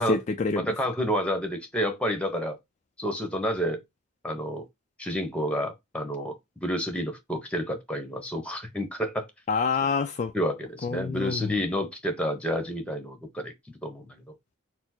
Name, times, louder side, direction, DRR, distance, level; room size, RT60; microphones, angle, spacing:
voice 1, 0.0-0.8 9.5-10.3 10.8-11.7, left 5 dB, 35° left, 0.3 m, -27 dB
voice 2, 0.5-2.6 3.0-3.8 4.2-4.6 5.0-6.4 6.6-9.3 10.3-14.2, equal, 5° left, 0.9 m, -29 dB
4.3 x 2.0 x 4.3 m
head